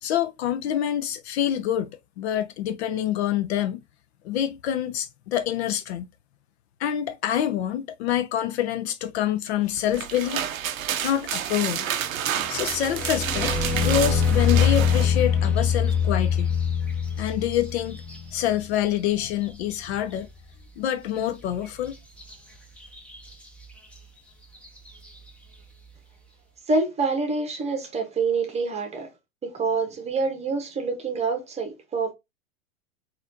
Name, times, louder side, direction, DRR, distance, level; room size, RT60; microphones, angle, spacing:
voice 1, 0.0-1.9 2.2-3.8 4.2-6.1 6.8-10.5 11.0-11.9 12.5-16.5 17.2-18.0 18.3-20.3 20.8-21.9, left 10 dB, 55° left, 0.5 m, -26 dB
sound 1, 9.8-15.1, right 10 dB, 85° right, 0.6 m, -29 dB
sound 2, 12.3-20.1 22.2-22.3 22.8-23.3 23.9-24.0 24.5-24.9, left 6 dB, 5° left, 0.5 m, -24 dB
voice 2, 26.7-29.1 29.4-32.1, right 4 dB, 15° right, 0.9 m, -26 dB
4.1 x 2.5 x 2.6 m
hypercardioid pair, 110°, 40 cm